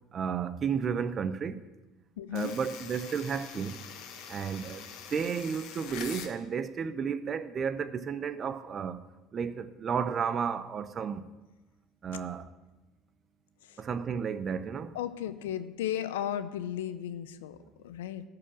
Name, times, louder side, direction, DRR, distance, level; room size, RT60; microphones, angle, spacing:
voice 1, 0.1-1.6 2.3-3.8 4.3-9.0 9.3-11.2 12.0-12.5 13.8-14.9, right 6 dB, 40° right, 0.6 m, -32 dB
voice 2, 2.2-2.5 13.6-13.8 14.9-18.2, left 10 dB, 90° left, 0.5 m, -35 dB
sound 1, 2.3-6.3, left 7 dB, 65° left, 1.2 m, -44 dB
13.5 x 4.8 x 7.3 m
hypercardioid pair, 80°, 0 cm